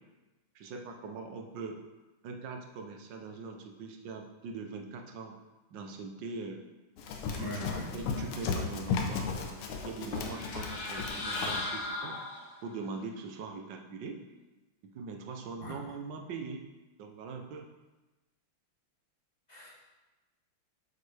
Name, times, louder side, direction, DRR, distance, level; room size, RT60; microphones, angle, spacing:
voice 1, 0.5-1.8 2.2-5.4 5.7-6.6 7.3-7.7 7.9-12.2 12.6-14.2 14.9-16.6 17.0-17.6, right 4 dB, 65° right, 3 dB, 1.4 m, -42 dB
Run, 7.0-11.7, left 5 dB, 90° left, 1.8 m, -35 dB
voice 2, 7.4-7.9 15.6-15.7 19.5-19.7, left 1 dB, 20° left, -7 dB, 1.9 m, -39 dB
sound 1, 10.1-12.8, left 2 dB, 50° left, 1.5 m, -37 dB
8.1 x 7.5 x 3.4 m, 1.1 s
omnidirectional pair, 2.4 m